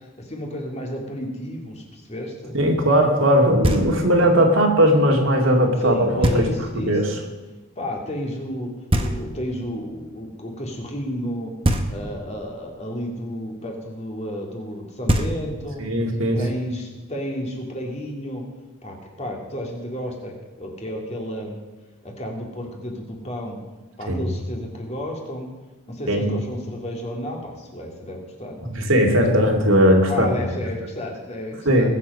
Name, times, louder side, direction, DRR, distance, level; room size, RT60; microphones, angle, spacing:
voice 1, 0.2-2.6 5.8-7.2 7.8-11.6 11.9-15.8 16.4-18.5 18.8-21.6 22.0-23.6 24.0-25.5 25.9-28.7 29.0-29.3 30.1-31.9, equal, 30° left, 0 dB, 2.5 m, -32 dB
voice 2, 2.5-6.5 6.9-7.2 15.8-16.4 24.1-24.2 26.1-26.4 28.7-30.5 31.7-32.0, equal, 70° right, 1 dB, 2.3 m, -18 dB
Knock, 3.6-4.3 6.2-6.9 8.9-9.7 11.6-12.4 14.7-14.8 15.1-15.9, right 1 dB, 25° right, 1.0 m, -24 dB
21.0 x 7.4 x 5.5 m, 1.1 s
head